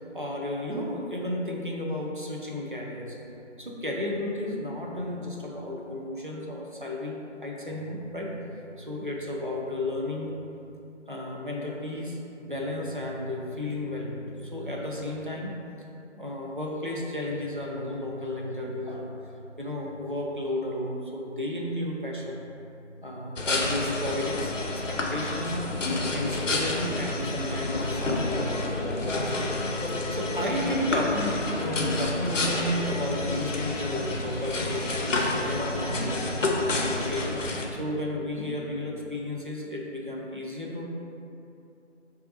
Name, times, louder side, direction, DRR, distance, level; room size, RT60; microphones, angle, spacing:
voice 1, 0.0-3.2 3.6-10.4 11.1-15.6 16.1-19.2 19.6-22.4 23.0-24.5 24.9-25.6 26.1-29.5 29.9-40.8, left 1 dB, 45° right, -2 dB, 0.4 m, -33 dB
sound 1, 23.4-37.7, left 2 dB, 85° left, 0.6 m, -29 dB
4.8 x 2.3 x 2.8 m, 2.8 s
figure-of-eight pair, 165°, 37 cm